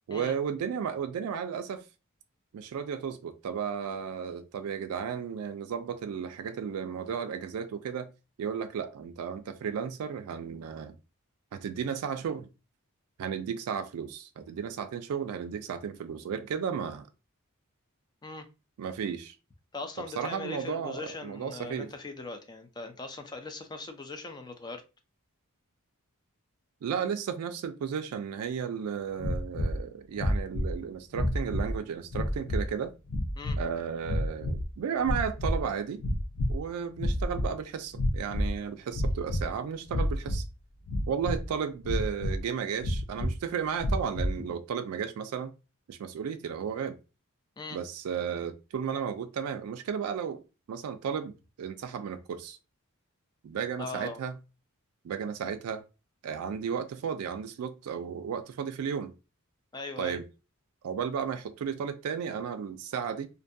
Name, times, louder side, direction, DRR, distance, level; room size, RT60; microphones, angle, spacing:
voice 1, 0.1-1.8 2.5-8.1 8.4-11.0 11.5-12.5 13.2-17.1 18.8-19.3 20.2-21.9 26.8-32.9 33.6-36.0 36.5-40.4 41.1-45.5 45.9-47.0 47.7-50.4 50.7-52.6 53.4-54.4 55.0-55.8 56.2-59.1 60.0-60.2 60.8-63.3, right 7 dB, 85° right, 0.3 m, -34 dB
voice 2, 19.7-24.8 33.4-33.6 47.6-47.8 53.8-54.2 59.7-60.2, left 3 dB, 20° left, 0.4 m, -40 dB
sound 1, 29.2-29.8 30.1-30.8 31.1-31.7 32.1-32.7 33.1-33.6 34.0-34.7 35.0-35.7 36.0-36.6 36.9-37.5 37.9-38.6 38.9-39.5 39.9-40.4 40.9-41.5 41.8-42.4 42.8-43.3 43.8-44.4, left 1 dB, 75° left, 0.5 m, -29 dB
2.5 x 2.2 x 2.5 m
head